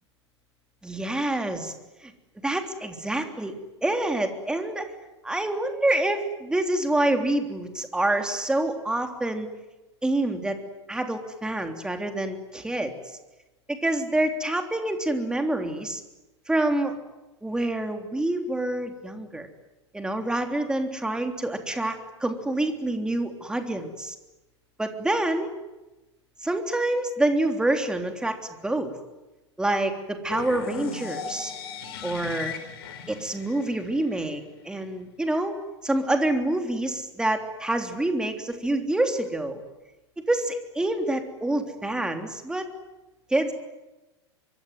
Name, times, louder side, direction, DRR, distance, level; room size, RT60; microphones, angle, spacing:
voice 1, 0.8-1.7 2.0-2.1 2.4-4.9 5.2-9.5 10.0-10.6 10.9-13.2 13.7-16.0 16.5-16.9 17.4-19.5 19.9-24.1 24.8-25.5 26.4-28.4 28.6-28.9 29.6-31.5 32.0-32.5 33.1-35.6 35.8-39.6 40.3-42.7 43.3-43.5, right 1 dB, 5° right, 5 dB, 3.4 m, -27 dB
sound 1, 30.3-34.3, left 6 dB, 55° left, 4.4 m, -37 dB
24.5 x 24.0 x 9.5 m, 1.1 s
figure-of-eight pair, 90°, 15 cm